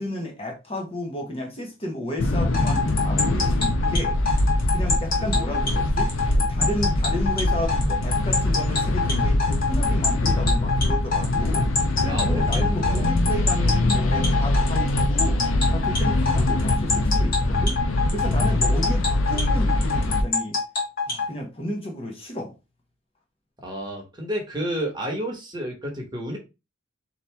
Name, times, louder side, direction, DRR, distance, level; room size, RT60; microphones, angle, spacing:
voice 1, 0.0-4.2 4.7-11.7 12.0-15.4 15.7-17.8 18.1-20.6 21.1-22.5, left 1 dB, 30° left, 1.0 m, -32 dB
sound 1, 2.2-20.2, left 1 dB, 70° left, 0.7 m, -23 dB
sound 2, 2.5-21.3, left 4 dB, 45° left, 1.6 m, -25 dB
voice 2, 12.1-13.1 23.6-26.4, equal, 20° right, 1.2 m, -31 dB
4.1 x 3.0 x 3.4 m
head